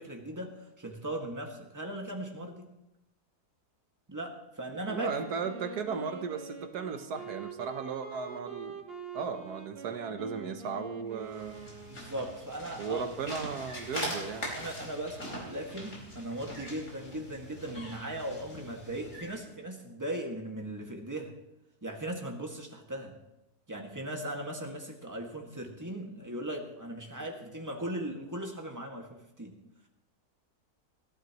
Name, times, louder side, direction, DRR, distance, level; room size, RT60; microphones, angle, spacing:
voice 1, 0.0-2.7 4.1-5.2 11.9-13.0 14.0-14.2 14.6-21.3 21.8-23.1 23.7-29.5, right 1 dB, 10° right, 1 dB, 1.8 m, -38 dB
Wind instrument woodwind instrument, 4.9-12.6, right 5 dB, 40° right, 1.4 m, -45 dB
voice 2, 4.9-8.8 9.1-11.6 12.8-14.5, right 5 dB, 85° right, 8 dB, 1.5 m, -36 dB
sound 1, 11.1-19.4, equal, 50° left, 5.1 m, -42 dB
21.0 x 14.5 x 3.1 m, 0.89 s
omnidirectional pair, 1.6 m